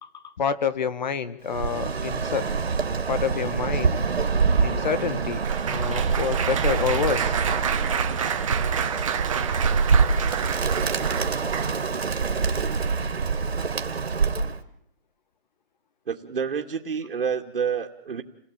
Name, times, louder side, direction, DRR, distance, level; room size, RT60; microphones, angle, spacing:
voice 1, 0.0-2.4 3.1-3.9 4.6-5.4 5.7-7.4, left 6 dB, 45° left, 14 dB, 1.7 m, -28 dB
Bird, 1.5-14.6, right 5 dB, 80° right, 2.8 m, -25 dB
Applause, 3.9-12.0 12.7-12.9 13.2-13.4, right 8 dB, 30° right, 1.6 m, -30 dB
voice 2, 16.1-18.2, right 6 dB, 60° right, -1 dB, 2.5 m, -28 dB
30.0 x 18.0 x 8.9 m, 0.68 s
hypercardioid pair, 170°, 31 cm